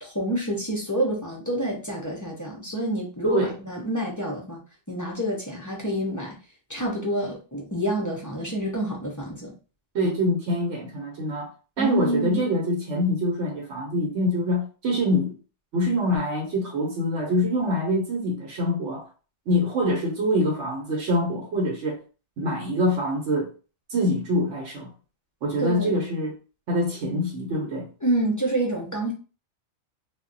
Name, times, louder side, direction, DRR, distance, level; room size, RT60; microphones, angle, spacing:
voice 1, 0.0-4.6 4.9-6.4 6.7-9.5 11.8-12.5 25.6-26.0 28.0-29.1, right 1 dB, 25° left, 0.4 m, -28 dB
voice 2, 9.9-11.5 11.8-15.4 15.7-19.1 19.5-22.0 22.4-23.5 23.9-24.9 25.4-26.3 26.7-27.9, equal, 80° right, 1.0 m, -25 dB
2.3 x 2.1 x 3.7 m
omnidirectional pair, 1.2 m